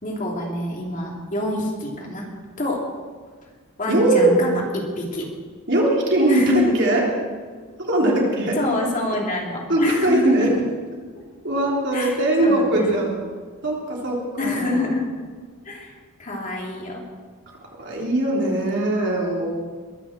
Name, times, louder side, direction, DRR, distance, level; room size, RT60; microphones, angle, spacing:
voice 1, 0.0-2.2 2.6-2.8 3.8-5.3 6.3-6.8 8.6-10.6 11.9-12.9 14.4-15.1 15.6-15.9 16.2-17.0, left 2 dB, 35° left, -1 dB, 3.0 m, -26 dB
voice 2, 3.9-4.4 5.7-7.0 7.8-8.6 9.7-10.5 11.4-13.2 13.6-14.9 17.8-19.5, right 1 dB, 50° right, -3 dB, 3.6 m, -20 dB
22.0 x 7.8 x 7.3 m, 1.5 s
head